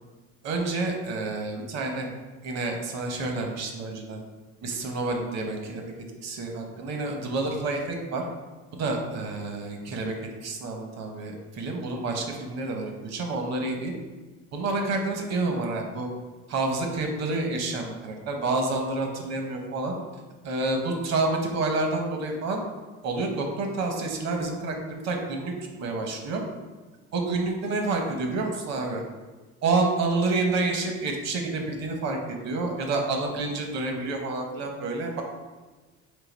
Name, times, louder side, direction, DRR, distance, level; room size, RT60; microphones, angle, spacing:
voice 1, 0.4-2.1 2.4-4.2 4.6-5.9 6.2-8.2 8.7-10.1 10.4-13.9 14.5-16.1 16.5-19.9 20.4-22.6 23.0-25.5 25.8-26.4 27.1-29.0 29.6-35.2, right 3 dB, 60° right, 2 dB, 0.9 m, -28 dB
3.8 x 2.7 x 3.9 m, 1.3 s
supercardioid pair, 90°, 29 cm